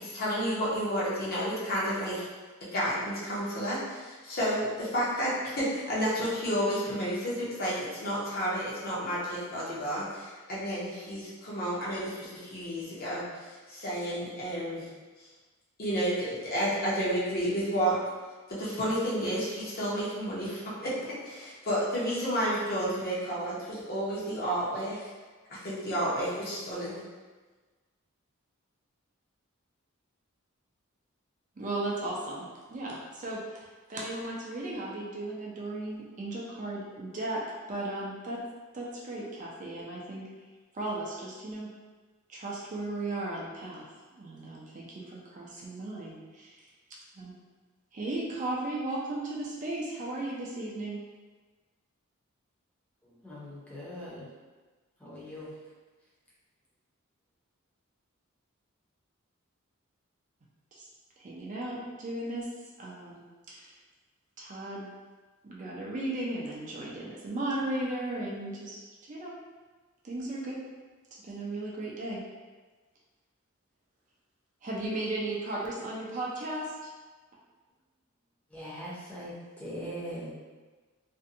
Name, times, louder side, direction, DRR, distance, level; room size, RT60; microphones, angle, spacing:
voice 1, 0.0-2.3 2.7-14.9 15.8-18.0 18.5-20.9 21.2-25.1 25.5-27.0, equal, 45° left, -8 dB, 0.8 m, -31 dB
voice 2, 31.6-37.4 37.7-38.4 38.7-40.2 40.7-41.7 42.3-43.8 44.1-46.6 47.1-47.3 47.9-51.0 60.7-60.8 61.2-62.5 62.8-63.2 63.5-63.8 64.4-64.9 65.4-69.3 70.0-70.6 71.2-72.2 74.6-76.9, right 2 dB, 35° right, -4 dB, 0.4 m, -36 dB
voice 3, 53.0-54.3 55.0-55.5 78.5-80.3, equal, 5° left, -8 dB, 0.6 m, -41 dB
2.6 x 2.2 x 2.6 m, 1.3 s
head